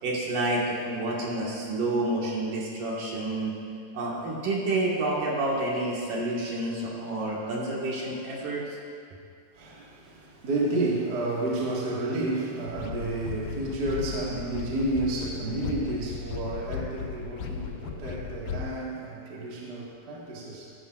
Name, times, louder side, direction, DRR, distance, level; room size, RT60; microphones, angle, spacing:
voice 1, 0.0-3.5 3.9-8.8, right 2 dB, 65° right, -4 dB, 3.3 m, -29 dB
voice 2, 9.5-20.7, right 2 dB, 40° right, -4 dB, 1.7 m, -31 dB
sound 1, 12.7-18.7, left 7 dB, 85° left, 2.3 m, -36 dB
15.0 x 14.0 x 2.5 m, 2.3 s
omnidirectional pair, 4.1 m